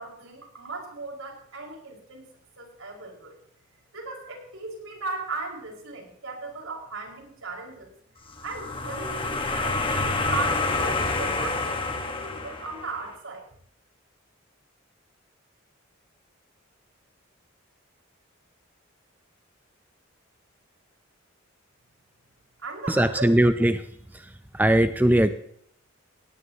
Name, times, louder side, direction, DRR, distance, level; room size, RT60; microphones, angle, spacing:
voice 1, 0.0-2.3 2.6-3.4 3.9-7.9 8.4-13.5 22.6-23.3, right 3 dB, 80° right, 0 dB, 5.4 m, -37 dB
sound 1, 8.3-13.0, left 3 dB, 25° left, 1.5 m, -28 dB
voice 2, 22.9-23.8 24.5-25.3, right 1 dB, 10° right, 10 dB, 0.6 m, -20 dB
18.0 x 17.5 x 3.0 m, 0.65 s
head